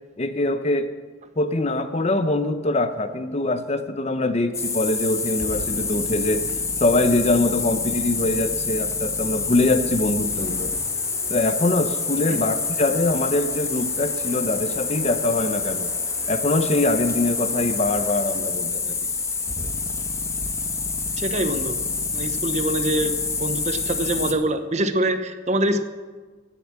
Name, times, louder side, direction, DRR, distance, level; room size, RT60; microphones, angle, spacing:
voice 1, 0.2-0.9 1.4-6.5 6.8-10.7 11.3-15.9 16.3-19.1, left 2 dB, 35° left, 10 dB, 0.8 m, -23 dB
sound 1, 4.5-24.3, left 4 dB, 15° left, 1.0 m, -27 dB
sound 2, 10.2-18.9, right 1 dB, 70° right, 5.0 m, -45 dB
voice 2, 21.2-21.8 22.1-25.8, right 1 dB, 40° right, 10 dB, 0.8 m, -25 dB
17.0 x 7.0 x 7.4 m, 1.4 s
head